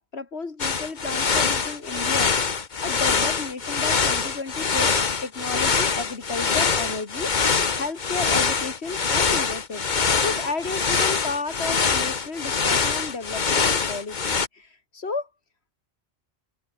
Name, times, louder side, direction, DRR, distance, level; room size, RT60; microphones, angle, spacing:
voice 1, 0.0-7.3 7.7-15.3, left 4 dB, 80° left, 2.6 m, -33 dB
sound 1, 0.6-14.5, left 5 dB, 45° left, 1.3 m, -24 dB
omnidirectional pair, 1.1 m